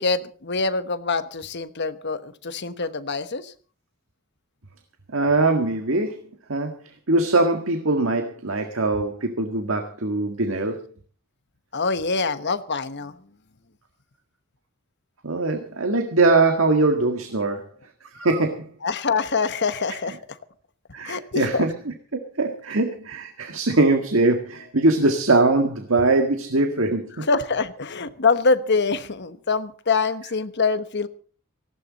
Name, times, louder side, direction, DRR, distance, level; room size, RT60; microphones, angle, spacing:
voice 1, 0.0-3.5 11.7-13.1 18.8-20.4 21.0-21.7 27.3-31.1, left 4 dB, 55° left, 11 dB, 1.2 m, -24 dB
voice 2, 5.1-6.2 6.5-6.8 7.1-10.8 15.2-17.6 18.1-18.7 20.9-21.7 22.4-27.3, right 2 dB, 70° right, 6 dB, 1.7 m, -21 dB
18.5 x 16.0 x 4.1 m, 0.41 s
head